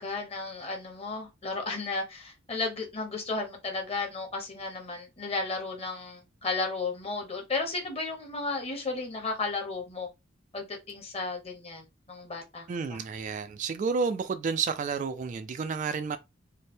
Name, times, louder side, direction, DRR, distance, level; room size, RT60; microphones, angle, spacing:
voice 1, 0.0-10.1 10.5-13.0, left 3 dB, 30° left, 1.1 m, -34 dB
voice 2, 12.7-16.2, right 5 dB, 40° right, 0.3 m, -30 dB
3.3 x 2.1 x 4.2 m
head